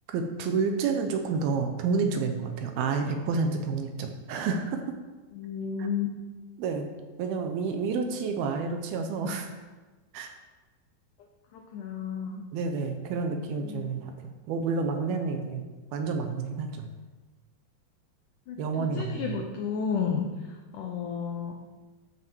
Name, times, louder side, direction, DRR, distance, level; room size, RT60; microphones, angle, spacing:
voice 1, 0.1-4.8 5.8-5.9 6.6-6.9 7.2-9.5 10.1-10.3 12.5-15.7 15.9-16.9 18.6-19.4, right 4 dB, 75° right, 5 dB, 2.5 m, -29 dB
voice 2, 5.3-6.1 11.5-12.4 13.6-14.0 18.5-20.3 20.7-21.6, left 7 dB, 85° left, 2 dB, 1.7 m, -32 dB
13.0 x 6.3 x 4.6 m, 1.2 s
omnidirectional pair, 4.8 m